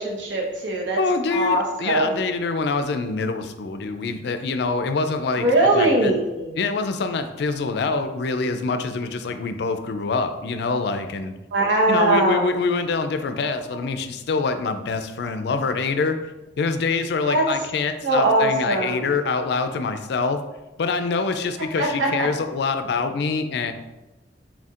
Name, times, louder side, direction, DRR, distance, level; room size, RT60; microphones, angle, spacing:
voice 1, 0.0-1.0 1.3-2.2 5.4-6.5 11.5-12.5 17.3-17.4 18.0-19.1 21.8-22.3, right 1 dB, 80° right, -2 dB, 1.0 m, -21 dB
voice 2, 1.0-5.5 5.7-6.1 6.6-11.3 11.9-16.2 16.6-20.4 20.8-23.7, left 4 dB, 60° left, 8 dB, 0.4 m, -25 dB
4.3 x 4.2 x 2.4 m, 1.1 s
head